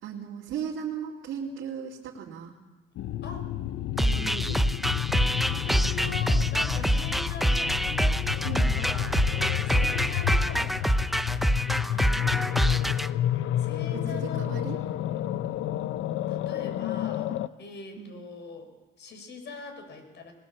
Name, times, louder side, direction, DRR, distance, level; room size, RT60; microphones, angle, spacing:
voice 1, 0.0-2.5 4.0-4.6 6.0-6.4 8.4-8.7 13.9-14.8 18.0-18.2, right 7 dB, 80° right, -3 dB, 2.6 m, -37 dB
sound 1, 3.0-17.5, left 12 dB, 80° left, 0.7 m, -30 dB
voice 2, 3.2-3.5 5.5-9.2 9.6-10.8 11.9-13.2 13.6-14.8 16.3-18.7 19.0-20.3, left 3 dB, 60° left, 5 dB, 5.6 m, -43 dB
sound 2, 4.0-13.1, right 1 dB, ahead, 0.6 m, -26 dB
20.5 x 19.0 x 7.2 m, 1.2 s
cardioid pair, 90°, 20 cm